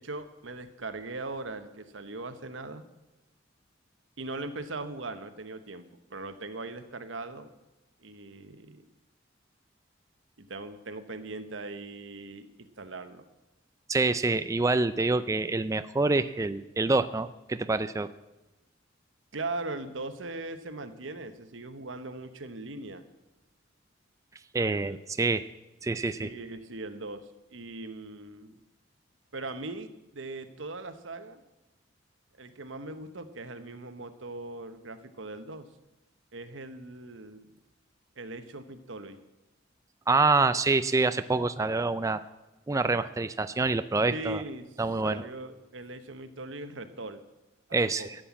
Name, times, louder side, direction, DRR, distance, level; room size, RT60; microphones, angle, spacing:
voice 1, 0.0-2.8 4.2-5.8 6.1-7.5 8.0-8.8 10.4-13.3 19.3-23.0 24.6-25.0 26.0-28.6 29.3-31.4 32.3-35.7 36.3-37.5 38.2-39.2 44.1-47.2 48.0-48.1, right 2 dB, 85° right, 9 dB, 1.1 m, -40 dB
voice 2, 13.9-18.1 24.5-25.4 25.8-26.3 40.1-42.2 42.7-44.4 44.8-45.2 47.7-48.0, right 3 dB, 15° right, 11 dB, 0.4 m, -26 dB
12.5 x 7.8 x 8.6 m, 1.0 s
head